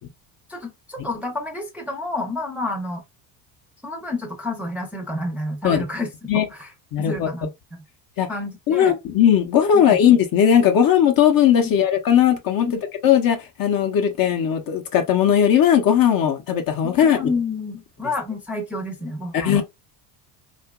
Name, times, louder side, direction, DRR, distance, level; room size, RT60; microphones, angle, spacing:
voice 1, 0.5-3.0 3.8-6.7 7.0-7.5 8.3-8.9 9.7-10.0 11.6-11.8 12.6-12.8 16.8-19.6, left 2 dB, 5° right, 0.6 m, -29 dB
voice 2, 6.9-7.3 8.2-8.3 8.7-12.7 13.0-17.3 19.3-19.6, left 9 dB, 45° left, 0.7 m, -18 dB
2.8 x 2.4 x 2.3 m
supercardioid pair, 95°, 48 cm